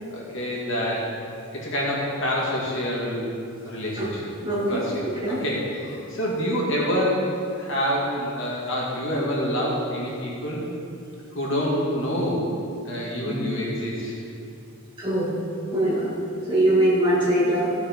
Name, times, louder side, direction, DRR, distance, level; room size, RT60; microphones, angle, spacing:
voice 1, 0.1-1.1 1.5-3.3 3.6-4.3 4.7-7.3 7.5-10.7 11.3-12.4 12.9-14.2, equal, 65° left, -5 dB, 2.2 m, -27 dB
voice 2, 4.4-5.4 13.3-13.4 15.0-15.3 15.7-16.1 16.5-17.7, right 1 dB, 20° right, -7 dB, 2.5 m, -22 dB
15.0 x 6.6 x 4.6 m, 2.5 s
head